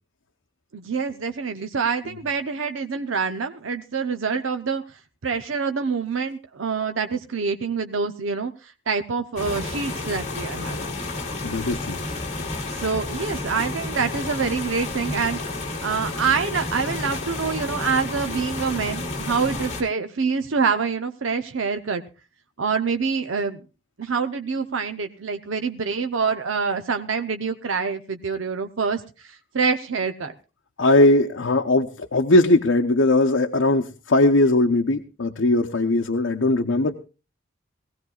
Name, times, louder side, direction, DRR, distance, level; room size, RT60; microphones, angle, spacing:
voice 1, 0.7-4.8 5.2-10.9 12.8-15.4 15.8-22.0 22.6-23.6 24.0-30.3, right 5 dB, 85° right, 7 dB, 0.8 m, -26 dB
sound 1, 9.4-19.8, left 2 dB, 35° left, 2.4 m, -31 dB
voice 2, 11.4-12.0 30.8-36.9, left 2 dB, 80° left, 3 dB, 0.8 m, -19 dB
20.5 x 16.5 x 2.4 m, 0.32 s
head